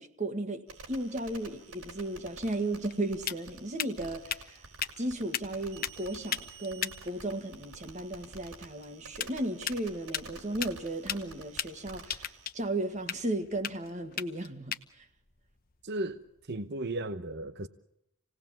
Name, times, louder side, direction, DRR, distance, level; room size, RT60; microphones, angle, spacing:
voice 1, 0.0-4.6 5.0-15.1, right 1 dB, 35° right, 1.7 m, -35 dB
sound 1, 0.7-12.5, right 3 dB, 90° right, 4.5 m, -50 dB
sound 2, 2.0-16.7, left 9 dB, 40° left, 1.0 m, -40 dB
voice 2, 15.8-17.7, right 2 dB, 50° right, 0.9 m, -35 dB
28.0 x 18.5 x 7.3 m
head